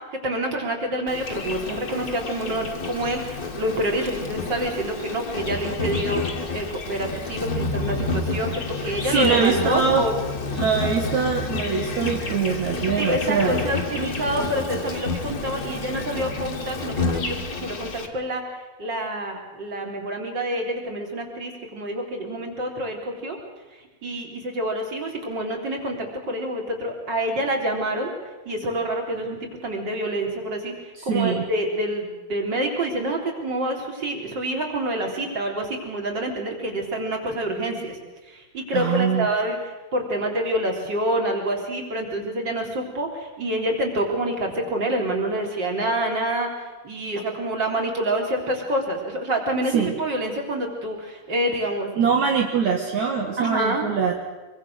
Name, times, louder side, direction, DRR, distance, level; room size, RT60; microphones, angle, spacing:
voice 1, 0.2-3.2 3.6-6.2 6.5-8.5 8.8-10.1 13.0-17.3 17.6-18.4 18.8-23.4 24.0-28.1 28.5-30.7 31.1-38.0 38.3-39.6 39.9-46.5 46.8-51.9 53.4-53.8, right 1 dB, 30° right, 2 dB, 4.4 m, -27 dB
Insect, 1.1-18.1, left 3 dB, 30° left, 2.1 m, -30 dB
voice 2, 8.8-10.0 10.5-13.6 31.0-31.4 38.7-39.3 49.7-49.9 52.0-54.1, right 6 dB, 60° right, 1 dB, 3.0 m, -23 dB
24.5 x 24.5 x 6.6 m, 1.2 s
omnidirectional pair, 3.7 m